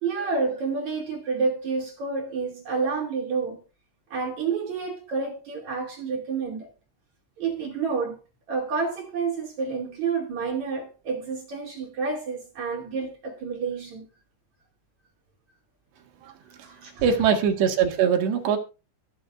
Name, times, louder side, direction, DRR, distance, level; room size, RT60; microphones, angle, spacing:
voice 1, 0.0-3.6 4.1-6.7 7.4-8.2 8.5-14.1 16.6-17.0, right 4 dB, 40° right, 3.3 m, -29 dB
voice 2, 17.0-18.6, right 7 dB, 65° right, 3.6 m, -22 dB
22.5 x 7.7 x 2.5 m
omnidirectional pair, 5.9 m